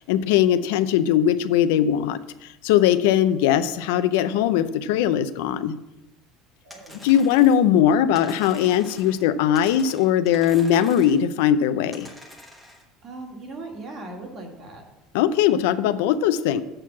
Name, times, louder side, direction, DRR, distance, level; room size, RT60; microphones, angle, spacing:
voice 1, 0.1-2.2 2.6-5.7 7.0-12.1 15.1-16.6, left 10 dB, 90° left, 12 dB, 0.5 m, -20 dB
voice 2, 6.6-7.0 13.0-14.8, right 2 dB, 30° right, 2 dB, 1.6 m, -38 dB
sound 1, 6.7-7.7 8.1-9.3 9.5-11.3 11.9-12.8, left 1 dB, 5° right, 1.1 m, -45 dB
7.6 x 4.6 x 7.1 m, 0.95 s
cardioid pair, 165°, 0 cm